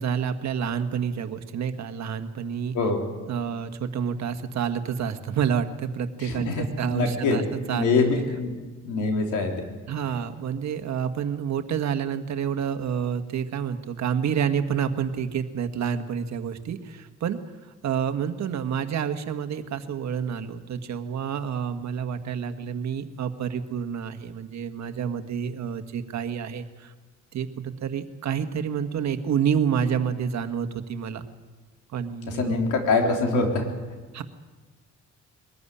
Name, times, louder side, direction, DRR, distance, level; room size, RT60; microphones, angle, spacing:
voice 1, 0.0-2.8 3.3-8.0 9.9-17.4 17.8-26.9 27.3-31.2 31.9-32.6 34.1-34.2, right 7 dB, 65° right, 8 dB, 1.6 m, -28 dB
voice 2, 6.2-7.4 7.7-8.5 8.8-9.6 32.3-33.6, left 3 dB, 90° left, 2 dB, 3.7 m, -24 dB
22.0 x 14.5 x 10.0 m, 1.4 s
cardioid pair, 90°, 30 cm